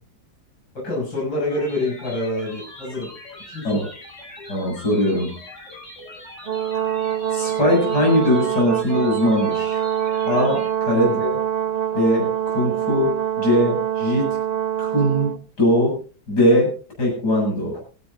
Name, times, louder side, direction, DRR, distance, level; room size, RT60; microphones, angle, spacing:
voice 1, 0.7-3.1 3.5-3.9 10.9-11.2, left 2 dB, 75° left, -4 dB, 7.4 m, -27 dB
sound 1, 1.5-10.7, left 1 dB, 35° left, 5.9 m, -41 dB
voice 2, 4.5-5.3 7.3-9.8 10.2-11.3 11.9-14.4 14.8-16.0 16.3-16.7 17.0-17.8, equal, 55° left, -1 dB, 8.6 m, -20 dB
Brass instrument, 6.4-15.4, right 10 dB, 30° right, 0.8 m, -24 dB
26.0 x 10.5 x 2.7 m, 0.37 s
omnidirectional pair, 2.1 m